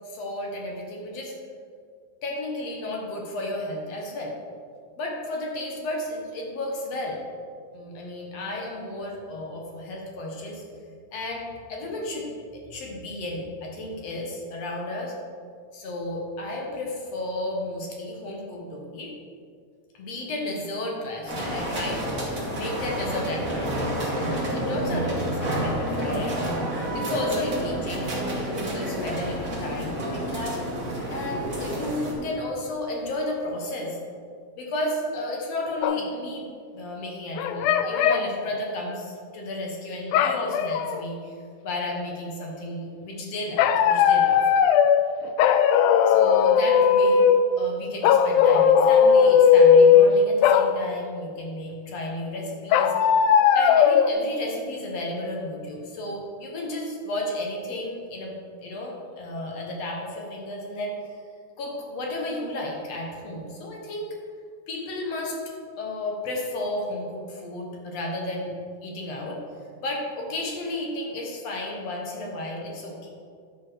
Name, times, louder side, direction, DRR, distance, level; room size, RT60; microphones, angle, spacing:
voice 1, 0.0-1.3 2.2-4.4 5.0-7.2 7.7-10.6 11.1-15.2 15.7-19.1 19.9-30.6 31.1-34.0 34.6-36.5 36.7-41.4 41.6-44.4 46.1-47.2 47.6-53.1 53.5-58.3 58.6-61.0 61.6-64.1 64.7-65.4 65.8-69.4 69.8-73.1, left 1 dB, 55° left, 0 dB, 2.1 m, -33 dB
sound 1, 21.3-32.1, right 1 dB, 30° right, 2.1 m, -29 dB
sound 2, 35.8-36.1 37.4-38.3 40.1-41.0 43.6-45.0 45.4-47.5 48.0-50.1 50.4-50.7 52.7-54.1, left 7 dB, 85° left, 1.7 m, -17 dB
11.0 x 5.6 x 6.1 m, 2.2 s
omnidirectional pair, 4.0 m